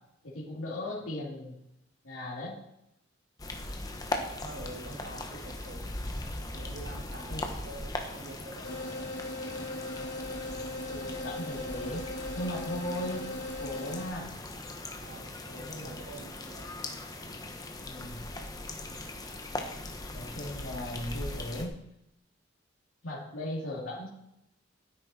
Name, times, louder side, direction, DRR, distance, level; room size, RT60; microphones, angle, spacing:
voice 1, 0.2-1.6 2.0-2.6 7.3-7.4 10.2-10.4 10.9-12.0 12.3-13.3 13.6-14.3 15.5-16.0 17.9-18.3 20.1-21.7 23.0-24.1, left 1 dB, 90° left, -5 dB, 3.0 m, -37 dB
sound 1, 3.4-21.7, left 2 dB, 20° left, 1.3 m, -39 dB
voice 2, 4.4-6.0 6.5-8.8 14.0-14.2 15.0-15.3 15.7-16.7, right 1 dB, 60° right, 0 dB, 2.5 m, -46 dB
sound 2, 8.6-14.0, left 1 dB, 60° left, 2.2 m, -38 dB
12.5 x 10.0 x 4.4 m, 0.82 s
head